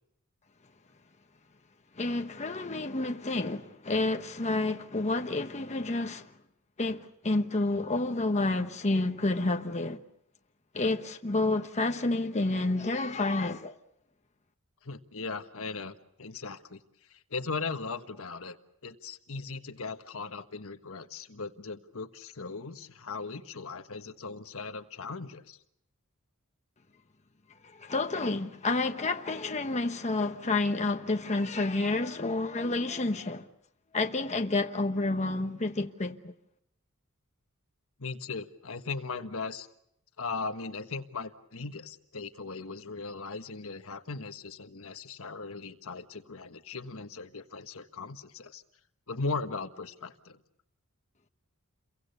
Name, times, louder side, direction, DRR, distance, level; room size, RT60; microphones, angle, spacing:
voice 1, 2.0-6.3 6.8-10.0 10.7-13.7 27.8-33.4 33.9-36.3, left 2 dB, 30° left, 1.1 m, -29 dB
voice 2, 14.8-15.9 16.2-16.8 17.1-18.6 18.8-25.6 38.0-39.7 40.2-48.6 49.1-50.4, left 4 dB, 65° left, 1.4 m, -38 dB
29.5 x 23.0 x 6.9 m
head